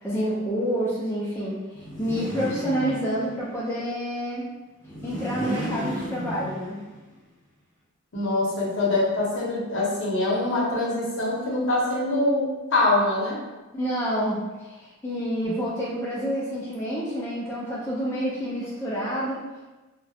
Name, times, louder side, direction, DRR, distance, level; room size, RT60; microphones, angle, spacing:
voice 1, 0.0-4.5 5.0-6.8 13.7-19.4, equal, 10° left, -7 dB, 0.3 m, -28 dB
sound 1, 1.7-3.5 4.8-7.0, equal, 35° right, 0.9 m, -33 dB
voice 2, 8.1-13.4 15.4-15.5, left 2 dB, 60° left, -4 dB, 0.7 m, -24 dB
2.3 x 2.1 x 2.6 m, 1.1 s
head